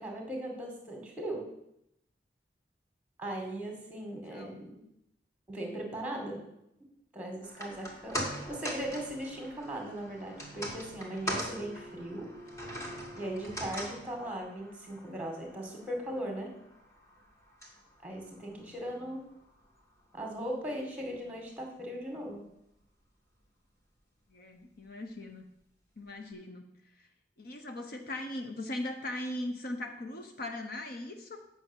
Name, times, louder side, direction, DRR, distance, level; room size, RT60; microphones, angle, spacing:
voice 1, 0.0-1.5 3.2-4.8 5.5-6.5 7.1-12.3 13.1-16.5 18.0-19.2 20.1-22.4, right 1 dB, 10° right, 1 dB, 2.2 m, -38 dB
voice 2, 4.0-4.6 8.2-8.4 24.3-25.4 26.0-26.7 27.4-31.4, left 1 dB, 55° left, 5 dB, 1.0 m, -39 dB
sound 1, 7.4-19.8 20.1-20.2, equal, 15° left, 1.9 m, -42 dB
8.3 x 6.0 x 7.3 m, 0.80 s
head